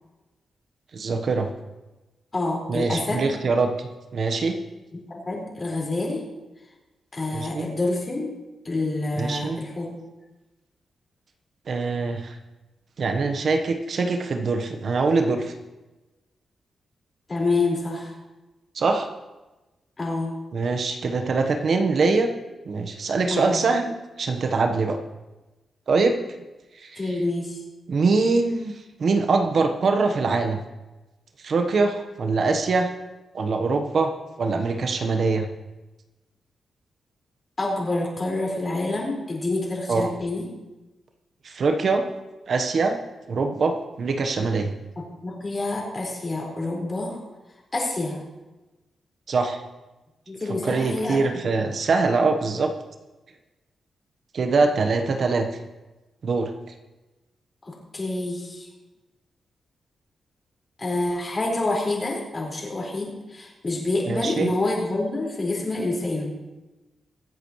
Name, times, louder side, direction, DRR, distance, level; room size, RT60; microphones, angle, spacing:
voice 1, 0.9-1.5 2.7-4.6 7.3-7.7 9.1-9.6 11.7-12.4 13.0-15.5 18.7-19.1 20.5-22.3 22.6-25.0 25.9-26.2 26.8-27.0 27.9-30.6 31.4-32.9 33.3-34.1 34.4-35.5 39.9-40.1 41.4-42.0 42.5-43.0 43.3-44.7 49.3-49.6 50.6-52.7 54.3-55.5 56.2-56.5 64.1-64.5, right 4 dB, 60° right, 5 dB, 1.2 m, -23 dB
voice 2, 2.3-3.2 5.1-6.2 7.1-8.3 8.6-9.9 17.3-18.1 20.0-20.3 23.3-23.6 27.0-27.6 37.6-40.5 45.0-47.1 47.7-48.2 50.3-51.2 57.9-58.7 60.8-66.3, left 2 dB, 35° left, -3 dB, 5.1 m, -27 dB
24.0 x 8.2 x 3.2 m, 1.1 s
cardioid pair, 80°, 0 cm